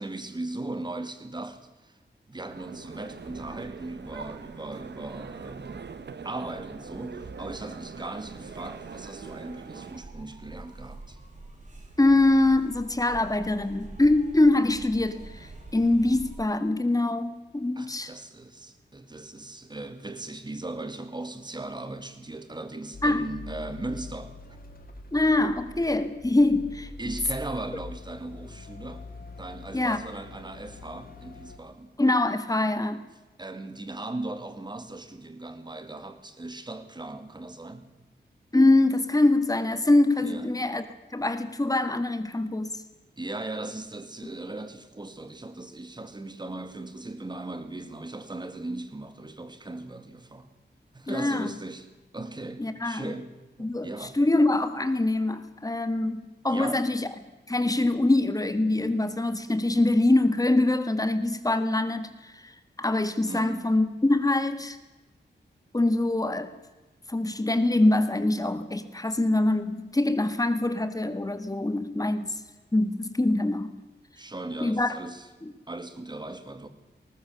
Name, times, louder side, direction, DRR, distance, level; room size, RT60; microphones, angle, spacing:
voice 1, 0.0-2.0 2.3-5.9 6.2-11.2 17.8-24.3 27.0-29.1 29.4-32.0 33.4-38.0 40.2-40.6 43.2-50.5 50.9-51.9 52.1-53.3 53.6-54.2 56.5-56.9 63.3-63.7 74.2-75.3 75.7-76.7, right 2 dB, 25° right, 9 dB, 1.9 m, -38 dB
sound 1, 2.5-10.0, right 5 dB, 70° right, 1.2 m, -42 dB
sound 2, 3.2-16.4, right 2 dB, 40° right, 4.0 m, -47 dB
voice 2, 12.0-18.1 23.0-23.2 25.1-26.9 29.7-30.0 32.0-33.0 38.5-40.8 41.1-42.8 51.1-51.5 52.6-53.1 53.6-57.1 57.5-64.8 65.7-66.5 67.1-72.4 72.7-73.7 74.6-75.0 75.4-75.5, left 2 dB, 20° left, 10 dB, 1.7 m, -24 dB
sound 3, 22.9-31.6, left 3 dB, 55° left, 2.2 m, -44 dB
20.0 x 19.0 x 6.9 m, 1.1 s
wide cardioid pair, 125°, 18 cm